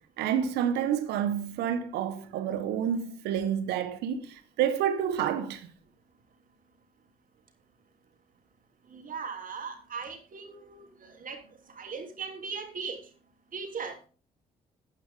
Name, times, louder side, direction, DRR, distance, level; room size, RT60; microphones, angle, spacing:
voice 1, 0.2-5.7, right 9 dB, 75° right, 1.3 m, -29 dB
voice 2, 8.9-11.4 11.7-13.0 13.5-14.0, right 5 dB, 50° right, 3.2 m, -38 dB
13.0 x 9.3 x 3.7 m
hypercardioid pair, 45°, 17 cm